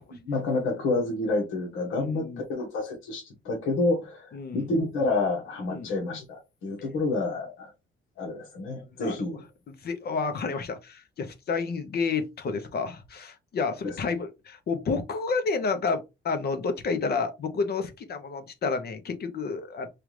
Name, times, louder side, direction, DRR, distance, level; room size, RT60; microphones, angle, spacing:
voice 1, 0.2-7.7 8.2-9.4 13.8-13.9, left 2 dB, 85° left, 1.3 m, -29 dB
voice 2, 1.9-2.4 4.3-4.7 5.7-5.9 9.0-9.2 9.7-19.9, left 4 dB, 55° left, 0.9 m, -30 dB
4.8 x 2.4 x 3.3 m
cardioid pair, 90°, 20 cm